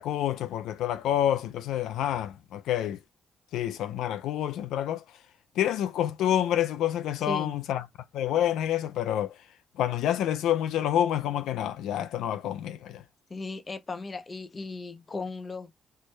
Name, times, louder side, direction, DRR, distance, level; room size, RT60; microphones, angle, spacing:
voice 1, 0.0-3.0 3.5-5.0 5.6-7.8 8.1-9.4 9.8-13.0, left 11 dB, 85° left, 0.4 m, -28 dB
voice 2, 7.3-7.6 13.3-15.7, left 3 dB, 30° left, 0.6 m, -36 dB
4.4 x 2.2 x 3.1 m
cardioid pair, 90°, 0 cm